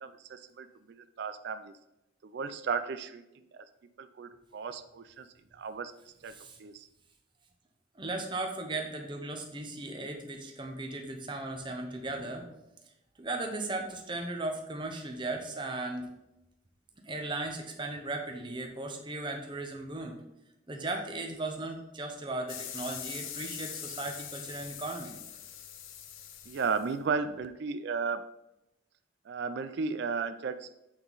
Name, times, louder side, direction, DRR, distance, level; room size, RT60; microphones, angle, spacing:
voice 1, 0.0-1.7 2.2-3.7 4.0-5.9 6.2-6.3 6.6-6.9 26.5-28.2 29.3-30.7, right 5 dB, 55° right, 10 dB, 0.3 m, -35 dB
voice 2, 7.9-12.5 13.2-16.1 17.0-20.2 20.7-25.1, right 2 dB, 25° right, 3 dB, 0.8 m, -37 dB
sound 1, 22.5-27.5, left 9 dB, 75° left, 0.6 m, -43 dB
8.7 x 3.7 x 4.0 m, 0.90 s
head